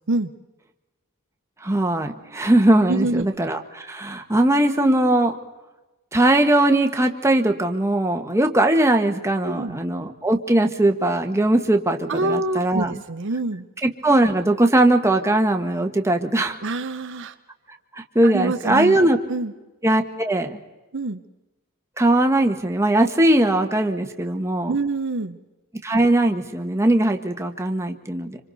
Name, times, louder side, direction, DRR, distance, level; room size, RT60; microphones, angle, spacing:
voice 1, 1.6-5.4 6.1-12.9 13.8-16.6 17.9-19.2 19.8-20.6 22.0-24.8 25.8-28.4, right 1 dB, 10° right, 5 dB, 1.3 m, -20 dB
voice 2, 2.9-3.3 9.4-9.8 12.1-13.7 16.6-17.4 18.2-19.0 19.3-19.5 20.9-21.2 24.7-25.4, right 2 dB, 55° right, 8 dB, 0.8 m, -26 dB
26.0 x 26.0 x 4.1 m, 1.1 s
head